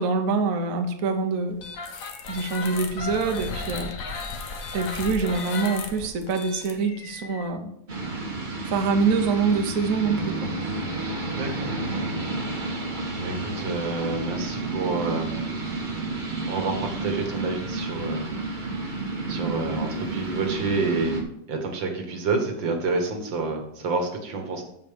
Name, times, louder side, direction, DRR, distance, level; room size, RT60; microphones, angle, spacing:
voice 1, 0.0-1.6 2.3-3.9 4.7-7.7 8.6-10.5, right 4 dB, 55° right, 5 dB, 1.2 m, -25 dB
sound 1, 1.6-7.5, left 4 dB, 55° left, 1.2 m, -35 dB
sound 2, 7.9-21.2, right 3 dB, 30° right, 1.2 m, -31 dB
voice 2, 11.3-12.1 13.2-15.3 16.4-18.3 19.3-21.2 21.5-24.6, right 3 dB, 85° right, 4 dB, 2.1 m, -28 dB
7.4 x 6.6 x 5.1 m, 0.76 s
omnidirectional pair, 2.0 m